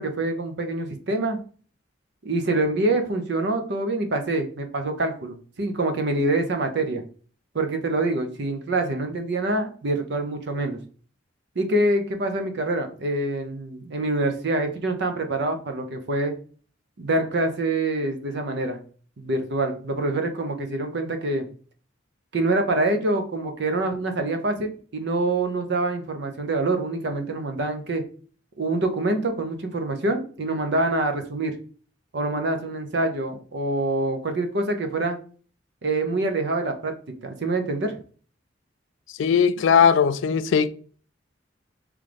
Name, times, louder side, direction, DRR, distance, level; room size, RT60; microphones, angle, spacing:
voice 1, 0.0-1.4 2.2-7.0 7.5-10.8 11.6-16.3 17.0-18.8 19.2-21.5 22.3-28.0 28.6-31.6 32.1-35.2 35.8-36.9 37.2-37.9, right 2 dB, 60° right, 0.7 m, -25 dB
voice 2, 39.2-40.7, left 7 dB, 75° left, 0.3 m, -18 dB
3.7 x 3.2 x 3.3 m
head